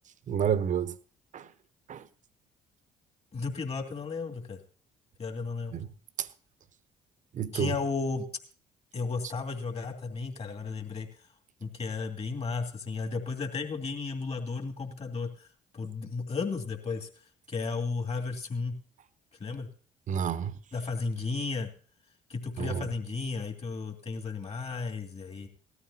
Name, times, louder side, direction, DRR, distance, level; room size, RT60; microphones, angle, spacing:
voice 1, 0.3-0.9 1.3-1.5 1.9-2.1 5.7-5.9 6.2-6.3 7.3-7.7 20.1-20.6 22.6-22.9, right 8 dB, 50° right, 0.8 m, -29 dB
voice 2, 3.3-4.6 5.2-5.7 7.5-8.3 8.9-11.1 11.6-18.8 19.4-19.7 20.7-21.7 22.3-25.5, left 4 dB, 40° left, 2.7 m, -34 dB
18.0 x 13.0 x 2.9 m
hypercardioid pair, 60°, 16 cm